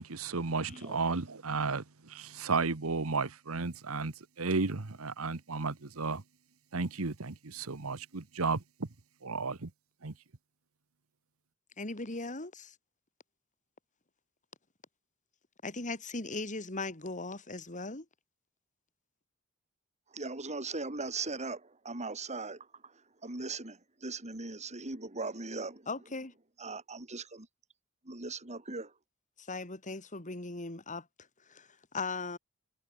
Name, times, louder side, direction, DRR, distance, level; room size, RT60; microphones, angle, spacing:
voice 1, 0.0-6.2 6.7-8.6 9.2-9.7 10.0-10.1, right 4 dB, 75° right, 1.3 m, -33 dB
voice 2, 0.7-1.0 20.1-25.9 26.6-27.5 28.0-28.9, right 3 dB, 35° right, 3.7 m, -39 dB
voice 3, 11.8-12.8 15.6-18.1 25.9-26.3 29.4-31.1 31.5-31.7 31.9-32.4, left 3 dB, 35° left, 3.6 m, -38 dB
head